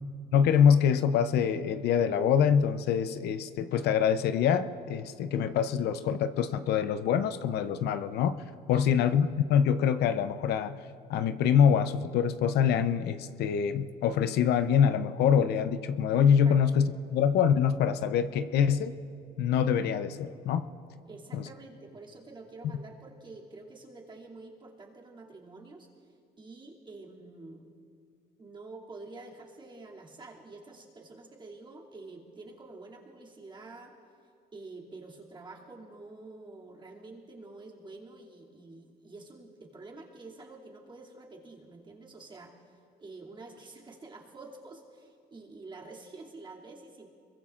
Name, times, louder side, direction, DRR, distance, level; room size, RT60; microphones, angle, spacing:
voice 1, 0.3-8.4 8.7-10.8 11.1-18.9 19.4-20.7 21.3-21.4, left 8 dB, 75° left, 10 dB, 0.7 m, -25 dB
voice 2, 21.1-25.9 26.4-27.7 28.4-33.9 34.5-42.5 43.0-47.1, right 3 dB, 30° right, -3 dB, 2.7 m, -48 dB
25.0 x 22.5 x 2.5 m, 2.4 s
cardioid pair, 110°, 17 cm